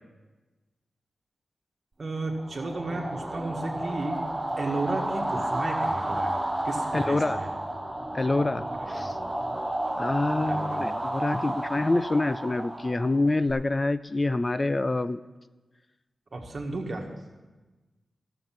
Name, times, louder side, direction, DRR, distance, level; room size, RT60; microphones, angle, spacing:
voice 1, 2.0-4.3 4.6-6.4 6.6-7.5 8.9-9.1 10.5-10.8 16.3-17.1, right 2 dB, 50° right, 1 dB, 1.8 m, -33 dB
sound 1, 2.4-13.5, right 1 dB, 15° right, 1.0 m, -31 dB
voice 2, 6.9-7.4 8.1-9.2 10.0-15.2, left 2 dB, 30° left, 14 dB, 0.3 m, -26 dB
13.5 x 7.0 x 5.9 m, 1.2 s
cardioid pair, 70°, 0 cm